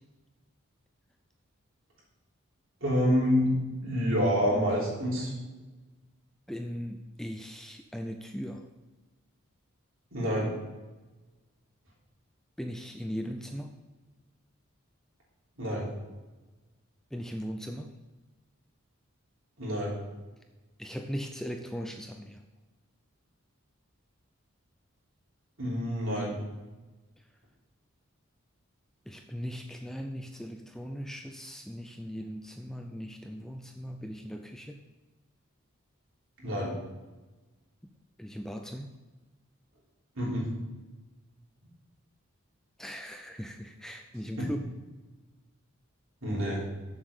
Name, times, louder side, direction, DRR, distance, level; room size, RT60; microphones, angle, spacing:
voice 1, 2.8-3.5 3.8-5.3 10.1-10.5 15.6-15.9 19.6-20.0 25.6-26.4 36.4-36.7 40.1-40.5 44.4-44.5 46.2-46.7, equal, 70° right, -5 dB, 3.3 m, -27 dB
voice 2, 6.5-8.7 12.6-13.8 17.1-17.9 20.8-22.4 29.1-34.8 38.2-38.9 42.8-44.6, equal, ahead, 4 dB, 0.4 m, -38 dB
7.3 x 7.2 x 5.0 m, 1.2 s
head